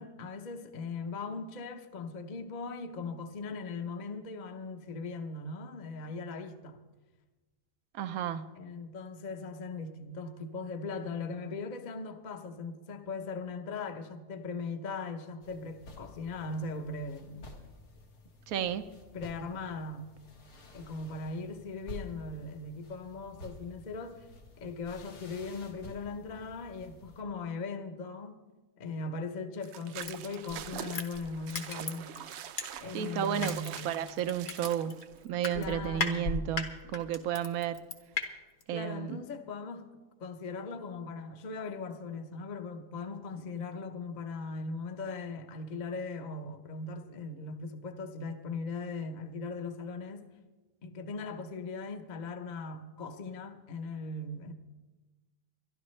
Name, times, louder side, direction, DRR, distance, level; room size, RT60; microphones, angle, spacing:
voice 1, 0.0-6.8 8.5-17.6 19.1-20.1 20.7-24.3 24.6-28.3 28.8-32.1 32.8-33.9 35.5-36.6 38.7-39.9 40.2-50.3 50.8-54.5, left 3 dB, 35° left, 0.8 m, -39 dB
voice 2, 7.9-8.4 18.5-18.8 32.9-36.6 36.9-37.8 38.7-39.2, right 10 dB, 65° right, 1.1 m, -32 dB
sound 1, 15.4-27.2, left 2 dB, 80° left, 2.3 m, -51 dB
sound 2, 29.6-35.2, right 10 dB, 85° right, 0.6 m, -44 dB
Crushing, 30.0-33.0 33.4-38.2 38.6-38.7, left 4 dB, 60° left, 1.7 m, -36 dB
22.5 x 12.0 x 3.2 m
omnidirectional pair, 1.7 m